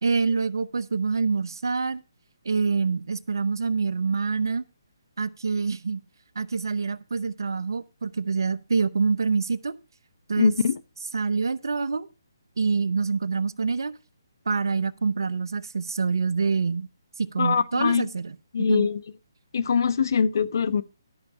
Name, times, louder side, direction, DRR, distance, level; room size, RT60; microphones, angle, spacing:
voice 1, 0.0-2.0 2.4-4.6 5.2-6.0 6.4-9.7 10.3-10.5 11.1-12.1 12.6-13.9 14.5-16.9 17.2-18.9, right 4 dB, 70° right, 0.9 m, -26 dB
voice 2, 10.4-10.8 17.4-18.1 18.5-19.0 19.5-20.8, left 6 dB, 60° left, 0.8 m, -23 dB
12.0 x 6.1 x 5.4 m
figure-of-eight pair, 145°, 2 cm